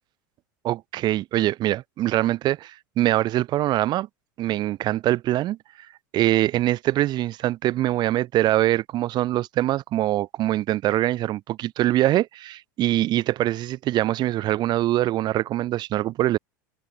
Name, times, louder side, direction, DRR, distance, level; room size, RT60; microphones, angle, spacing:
voice 1, 0.6-4.1 4.4-5.6 6.1-16.4, right 14 dB, 40° right, 0.6 m, -23 dB
hypercardioid pair, 90°, 11 cm